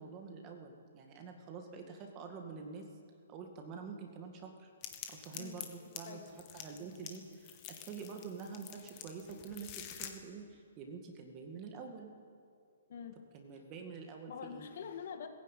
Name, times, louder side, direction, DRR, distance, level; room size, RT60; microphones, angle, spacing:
voice 1, 0.0-2.9 3.3-4.7 5.1-6.2 6.5-12.1 13.3-14.7, right 5 dB, 20° right, 3 dB, 2.0 m, -47 dB
sound 1, 4.8-10.1, left 10 dB, 25° left, 1.8 m, -48 dB
voice 2, 6.1-6.4 12.9-13.2 14.3-15.3, left 7 dB, 50° left, 7 dB, 2.1 m, -45 dB
19.5 x 16.0 x 9.3 m, 2.3 s
hypercardioid pair, 170°, 0 cm